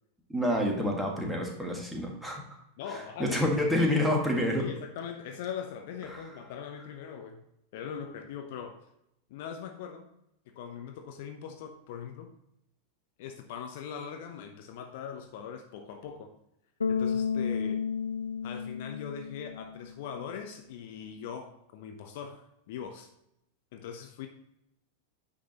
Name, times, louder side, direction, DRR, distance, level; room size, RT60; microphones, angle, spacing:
voice 1, 0.3-2.4 3.2-4.7 6.1-6.2, left 1 dB, 5° right, 0 dB, 1.8 m, -28 dB
voice 2, 2.8-3.6 4.6-7.4 7.7-8.8 9.3-10.1 10.5-12.3 13.2-16.3 16.9-17.8 18.4-23.1 23.7-24.3, left 7 dB, 50° left, 5 dB, 0.8 m, -41 dB
Bass guitar, 16.8-19.9, left 6 dB, 75° left, 0.3 m, -32 dB
9.3 x 6.3 x 3.0 m, 0.81 s
figure-of-eight pair, 90°, 0 cm